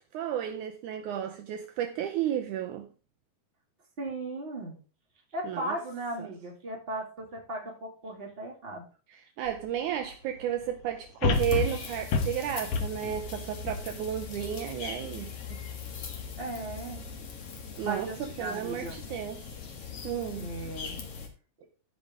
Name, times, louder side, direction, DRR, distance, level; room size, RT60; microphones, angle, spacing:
voice 1, 0.1-2.9 5.4-5.8 6.2-6.3 9.1-15.6 17.8-19.5 20.0-20.5, right 10 dB, 85° right, 1.7 m, -33 dB
voice 2, 4.0-4.8 5.3-8.8 16.4-17.0 17.8-19.0 20.4-21.0, right 2 dB, 20° right, 2.0 m, -37 dB
sound 1, 9.5-9.6 11.2-14.5 15.0-15.1, left 4 dB, 85° left, 1.4 m, -29 dB
sound 2, 11.3-21.3, left 6 dB, 50° left, 2.0 m, -41 dB
15.0 x 5.2 x 3.6 m
omnidirectional pair, 4.4 m